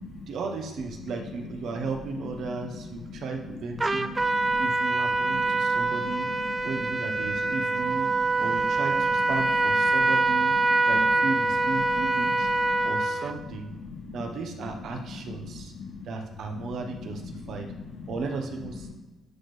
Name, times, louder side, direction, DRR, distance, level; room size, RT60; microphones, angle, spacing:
voice 1, 0.3-4.2 4.6-10.5 10.9-12.5 12.8-13.7 14.1-15.7 16.0-17.7 18.1-18.9, right 4 dB, 70° right, 4 dB, 1.0 m, -35 dB
Trumpet, 3.8-13.3, right 3 dB, 20° right, 0.4 m, -25 dB
voice 2, 4.3-4.6 5.2-6.1 6.5-6.6 8.1-8.2 8.5-8.6 10.7-10.8 12.8-12.9 13.8-14.2 15.0-15.4 15.7-15.9 16.6-16.7 17.0-18.1, left 4 dB, 65° left, -8 dB, 1.9 m, -41 dB
11.0 x 4.4 x 3.3 m, 1.1 s
cardioid pair, 90°, 0 cm